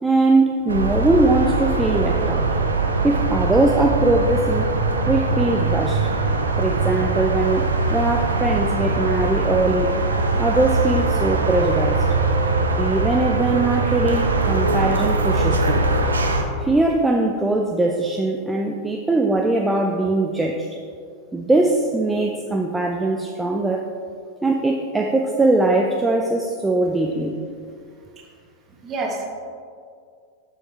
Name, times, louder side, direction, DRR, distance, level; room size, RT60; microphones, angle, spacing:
voice 1, 0.0-2.5 3.0-4.8 5.1-6.1 6.6-10.0 10.4-12.1 12.8-15.9 16.6-20.7 21.3-23.9 24.4-27.3, right 2 dB, 10° right, 1 dB, 0.5 m, -21 dB
sound 1, 0.7-16.4, right 3 dB, 75° right, 0.6 m, -21 dB
voice 2, 28.7-29.3, right 3 dB, 25° right, 0 dB, 1.3 m, -29 dB
7.3 x 6.4 x 3.2 m, 2.2 s
figure-of-eight pair, 90°, 0 cm